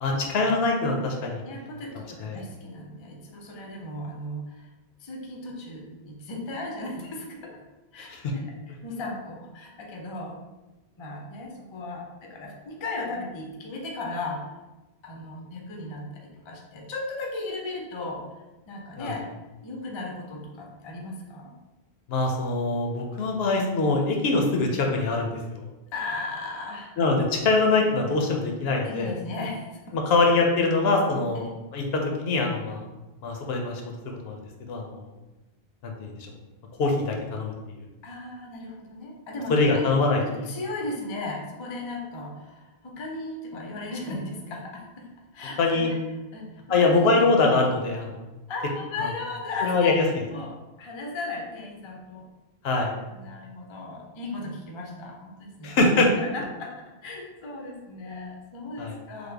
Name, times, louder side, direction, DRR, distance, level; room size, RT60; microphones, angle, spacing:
voice 1, 0.0-1.4 2.2-2.4 8.0-8.3 19.0-19.1 22.1-25.6 27.0-29.1 29.9-31.4 31.7-32.8 33.2-34.4 34.7-35.1 35.8-36.1 36.8-37.5 39.5-40.2 45.6-45.9 46.7-48.2 49.6-50.0 52.6-53.0 55.6-56.1 58.8-58.9, left 3 dB, 75° left, 1 dB, 0.8 m, -23 dB
voice 2, 1.4-4.7 5.0-7.6 7.9-8.4 8.8-10.4 11.0-14.5 15.0-18.3 18.7-19.3 19.6-21.5 24.0-24.1 25.9-26.9 28.8-30.2 31.4-31.5 38.0-39.9 40.2-45.1 45.3-46.0 46.3-47.2 48.5-50.0 50.3-52.3 53.1-55.8 56.1-56.8 57.0-59.3, left 2 dB, 40° left, 0 dB, 0.4 m, -36 dB
3.3 x 2.1 x 3.3 m, 1.1 s
omnidirectional pair, 1.1 m